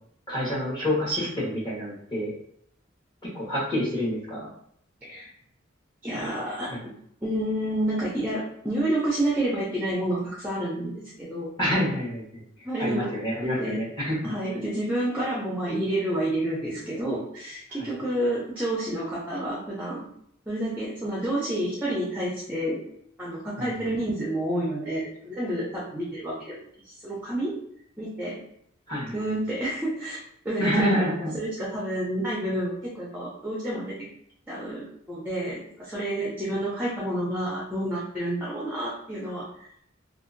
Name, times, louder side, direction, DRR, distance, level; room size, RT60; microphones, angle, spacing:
voice 1, 0.3-2.3 3.2-4.5 11.6-12.4 12.8-14.3 23.6-23.9 28.9-29.2 30.6-31.3, equal, 25° left, -7 dB, 1.2 m, -27 dB
voice 2, 6.0-6.9 7.2-11.5 12.6-13.1 13.6-13.8 14.2-20.1 20.5-22.8 23.2-26.6 26.9-27.5 28.0-28.4 29.1-30.2 30.4-31.0 31.3-33.9 34.5-39.5, right 1 dB, 10° right, -6 dB, 0.5 m, -29 dB
2.7 x 2.4 x 2.5 m, 0.69 s
head